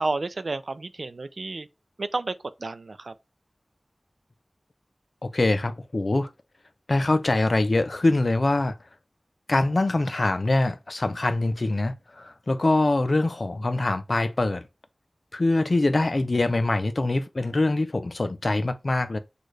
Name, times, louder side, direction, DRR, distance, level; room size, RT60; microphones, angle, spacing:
voice 1, 0.0-1.7 2.0-2.3 2.6-3.1, right 3 dB, 75° right, 0.4 m, -30 dB
voice 2, 5.2-6.3 6.9-8.8 9.5-14.6 15.3-19.2, left 2 dB, 60° left, 0.5 m, -24 dB
6.3 x 2.4 x 3.2 m
wide cardioid pair, 40°, 0 cm